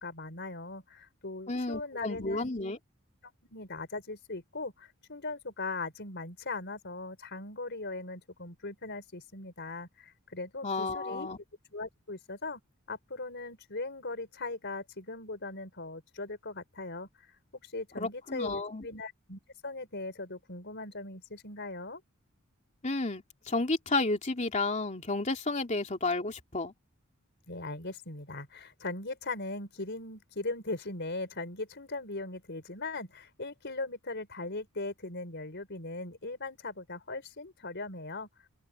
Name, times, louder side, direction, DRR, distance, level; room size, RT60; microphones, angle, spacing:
voice 1, 0.0-2.5 3.2-11.3 11.7-12.6 12.9-17.1 17.6-22.0 27.5-38.3, left 2 dB, 55° left, 4.8 m, -39 dB
voice 2, 1.5-2.8 10.6-11.4 18.0-18.9 22.8-26.7, left 3 dB, 35° left, 3.1 m, -32 dB
head